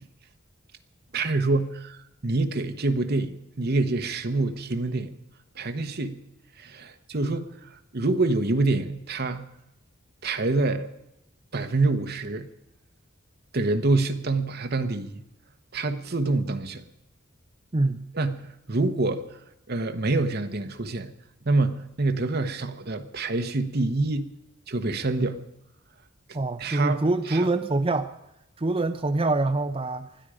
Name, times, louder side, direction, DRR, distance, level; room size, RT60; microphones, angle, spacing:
voice 1, 1.1-5.1 5.5-6.2 6.6-9.5 10.2-10.9 11.5-12.5 13.5-15.2 15.7-16.8 18.1-19.4 19.7-21.1 21.4-24.3 24.7-25.4 26.6-27.5, right 2 dB, 55° right, 7 dB, 1.1 m, -26 dB
voice 2, 17.7-18.1 26.3-28.1 28.6-30.1, right 2 dB, 30° right, 7 dB, 0.7 m, -25 dB
20.5 x 13.5 x 5.0 m, 0.86 s
head